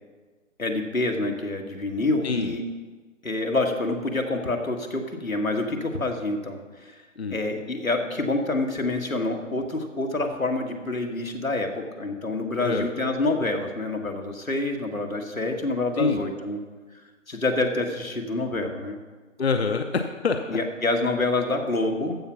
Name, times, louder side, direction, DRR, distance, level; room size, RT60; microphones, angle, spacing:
voice 1, 0.6-2.6 3.2-7.0 7.3-16.6 17.3-19.0 20.5-22.2, left 2 dB, 90° left, 3 dB, 1.7 m, -27 dB
voice 2, 2.2-2.6 7.2-7.4 12.6-12.9 16.0-16.2 19.4-20.6, left 4 dB, 50° left, 6 dB, 0.8 m, -26 dB
14.5 x 5.2 x 5.8 m, 1.3 s
figure-of-eight pair, 155°, 40 cm